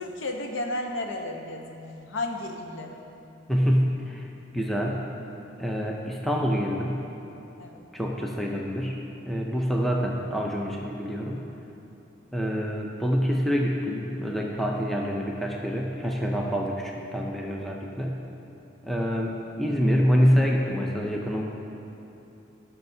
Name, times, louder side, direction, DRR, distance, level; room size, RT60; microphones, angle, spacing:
voice 1, 0.0-3.0 7.6-7.9, left 2 dB, 75° left, 2 dB, 0.9 m, -33 dB
voice 2, 3.5-4.3 4.5-5.0 5.6-7.0 7.9-11.4 12.3-18.2 18.8-21.4, equal, ahead, -1 dB, 0.5 m, -26 dB
17.5 x 5.8 x 2.7 m, 2.9 s
head